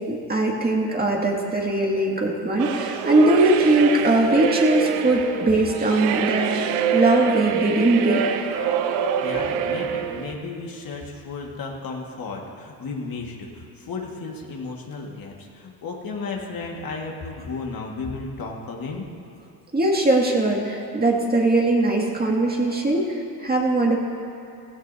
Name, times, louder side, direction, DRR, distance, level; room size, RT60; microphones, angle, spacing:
voice 1, 0.1-8.2 19.7-24.0, right 2 dB, 20° right, -1 dB, 2.2 m, -20 dB
sound 1, 2.6-10.3, right 7 dB, 85° right, 0.8 m, -25 dB
voice 2, 9.2-19.1, left 4 dB, 50° left, -1 dB, 1.9 m, -34 dB
16.0 x 16.0 x 2.8 m, 2.5 s
supercardioid pair, 70°, 45 cm